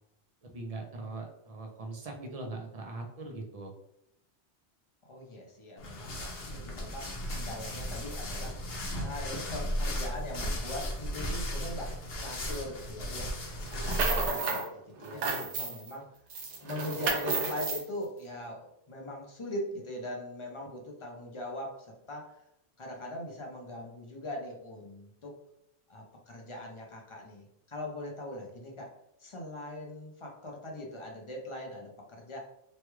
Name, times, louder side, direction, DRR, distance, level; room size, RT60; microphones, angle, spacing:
voice 1, 0.4-3.7 14.9-15.6, right 2 dB, 45° right, 2 dB, 0.5 m, -41 dB
voice 2, 5.0-16.1 16.6-22.4 22.8-25.4 25.9-32.4, left 1 dB, 35° left, -1 dB, 0.5 m, -41 dB
sound 1, 5.8-14.3, equal, 60° left, 0.9 m, -35 dB
sound 2, 13.7-14.7 15.0-15.9 16.3-17.8, right 4 dB, 80° right, 0.9 m, -32 dB
3.1 x 2.3 x 3.0 m, 0.80 s
omnidirectional pair, 1.2 m